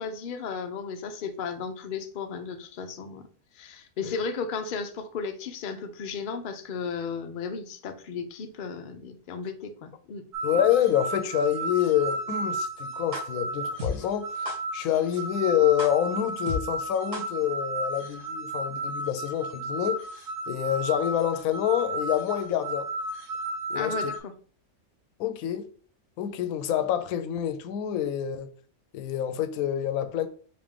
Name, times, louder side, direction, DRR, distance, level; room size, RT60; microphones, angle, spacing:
voice 1, 0.0-3.3 3.5-10.2 23.7-24.3, left 5 dB, 60° left, 0.5 m, -34 dB
sound 1, 10.3-24.2, right 2 dB, 35° right, 1.3 m, -33 dB
voice 2, 10.4-14.5 14.7-20.0 20.5-22.9 23.7-24.1 25.2-25.7 26.2-28.5 28.9-30.3, left 10 dB, 75° left, 1.0 m, -27 dB
sound 2, 13.1-13.2 13.8-13.9 14.4-14.6 15.1-15.2 15.8-15.9 16.5-16.6 17.1-17.2, left 3 dB, 60° right, 2.6 m, -32 dB
5.2 x 2.8 x 3.6 m
omnidirectional pair, 1.5 m